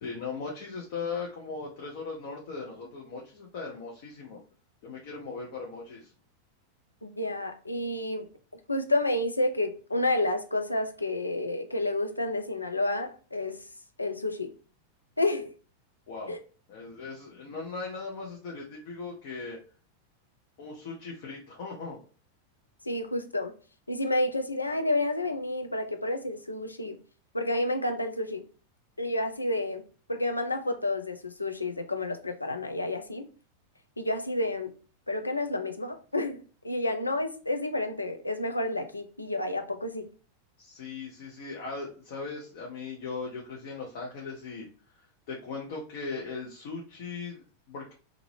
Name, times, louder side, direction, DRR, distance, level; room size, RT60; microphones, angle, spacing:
voice 1, 0.0-4.4 4.8-6.1 16.1-16.4 16.7-19.6 20.6-22.0 40.6-44.7 45.3-47.9, left 4 dB, 50° left, 0.7 m, -38 dB
voice 2, 7.0-8.3 8.7-13.6 14.0-14.5 15.2-15.5 16.3-16.4 22.8-23.5 23.9-27.0 27.3-28.5 29.0-29.8 30.1-33.3 34.0-34.7 35.1-40.1, left 2 dB, 85° left, 0.4 m, -30 dB
2.7 x 2.5 x 3.1 m
figure-of-eight pair, 90°, 0 cm